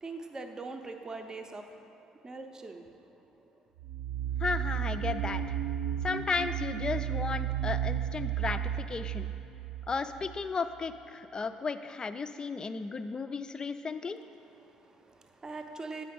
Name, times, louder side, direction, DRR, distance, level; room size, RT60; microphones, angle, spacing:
voice 1, 0.0-3.6 14.4-16.0, right 3 dB, 25° right, 5 dB, 0.7 m, -43 dB
sound 1, 3.8-10.4, right 10 dB, 60° right, 0.3 m, -33 dB
voice 2, 4.4-5.6 6.0-9.3 9.9-14.2, left 4 dB, 30° left, 10 dB, 0.4 m, -34 dB
8.4 x 4.8 x 5.2 m, 2.9 s
hypercardioid pair, 55°, 3 cm